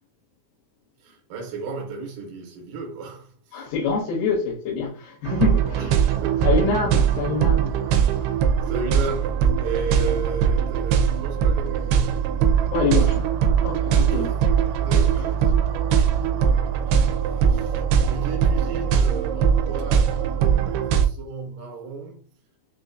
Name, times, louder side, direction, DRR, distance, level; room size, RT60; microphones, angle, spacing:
voice 1, 1.0-3.6 5.8-6.6 8.4-12.2 14.1-14.4 14.7-16.5 16.9-22.2, right 4 dB, 70° right, 2.4 m, -35 dB
voice 2, 3.5-7.8 12.7-13.3 13.6-14.5 20.5-20.8, left 4 dB, 85° left, 2.8 m, -26 dB
sound 1, 5.3-21.1, right 7 dB, 90° right, 2.5 m, -21 dB
6.2 x 2.3 x 2.6 m
omnidirectional pair, 4.3 m